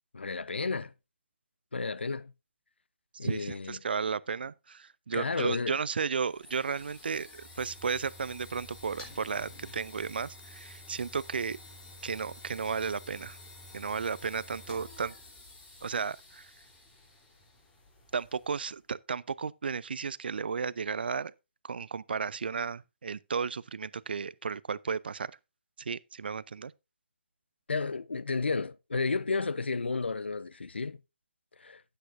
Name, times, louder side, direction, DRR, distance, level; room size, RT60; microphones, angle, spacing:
voice 1, 0.1-0.9 1.7-2.3 3.2-3.8 5.1-5.8 27.7-31.0 31.6-31.8, left 4 dB, 70° left, 0.7 m, -32 dB
voice 2, 3.2-11.6 12.0-13.4 13.7-15.1 15.8-16.5 18.1-21.3 21.6-25.3 25.8-26.7, right 5 dB, 60° right, 0.5 m, -34 dB
sound 1, 6.0-18.8, left 1 dB, 15° left, 3.4 m, -50 dB
13.0 x 8.7 x 2.6 m
figure-of-eight pair, 140°, 6 cm